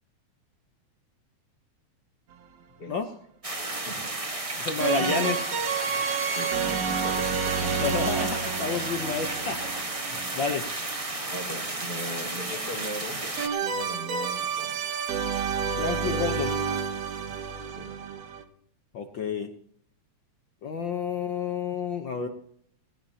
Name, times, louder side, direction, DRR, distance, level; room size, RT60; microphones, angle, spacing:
sound 1, 2.3-2.4 4.8-10.8 13.4-18.4, right 6 dB, 60° right, 2.2 m, -30 dB
voice 1, 2.8-3.1 3.9-4.1 5.0-5.3 5.9-6.0 6.3-7.9 11.3-13.3 13.6-14.8 17.7-17.9, right 1 dB, 50° left, 2 dB, 5.0 m, -38 dB
sound 2, 3.4-13.5, right 2 dB, 30° right, 0.6 m, -33 dB
voice 2, 4.6-5.4 7.7-9.8 10.4-10.6 15.7-16.5 18.9-19.5 20.6-22.3, left 5 dB, 65° left, 6 dB, 1.2 m, -30 dB
20.0 x 17.5 x 2.8 m, 0.66 s
omnidirectional pair, 3.4 m